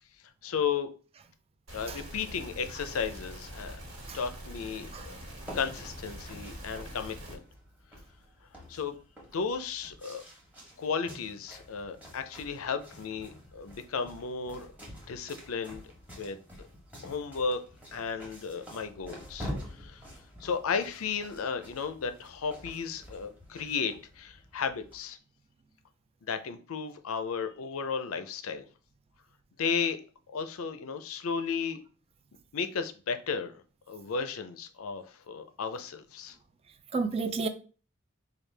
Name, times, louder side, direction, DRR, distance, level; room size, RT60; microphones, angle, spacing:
voice 1, 0.4-0.9 1.7-3.8 4.1-5.1 5.5-7.4 8.7-8.9 9.3-10.2 10.8-14.7 15.1-15.8 16.1-16.7 17.0-17.6 17.9-20.0 20.4-25.2 26.2-28.6 29.6-30.0 30.3-31.8 32.5-36.4, left 6 dB, 80° left, 0.5 m, -34 dB
sound 1, 1.7-7.4, equal, 70° right, 1.6 m, -44 dB
sound 2, 5.4-25.0, equal, 10° right, 1.1 m, -47 dB
voice 2, 36.9-37.5, right 4 dB, 30° right, 0.3 m, -31 dB
4.8 x 2.3 x 3.3 m
head